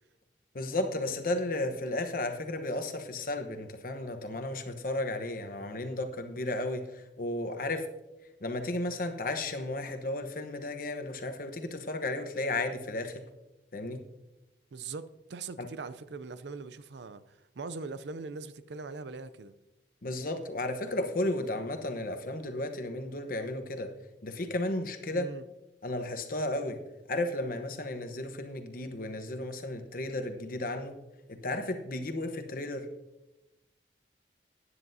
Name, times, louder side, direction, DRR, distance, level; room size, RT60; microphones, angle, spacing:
voice 1, 0.5-7.9 8.4-13.2 13.7-14.0 15.6-15.7 20.0-23.9 24.2-25.3 25.8-26.8 27.1-31.0 31.3-32.9, left 2 dB, 50° left, 1.0 m, -34 dB
voice 2, 14.7-19.5 25.1-25.4, right 4 dB, 75° right, 0.5 m, -41 dB
15.0 x 9.8 x 2.7 m
head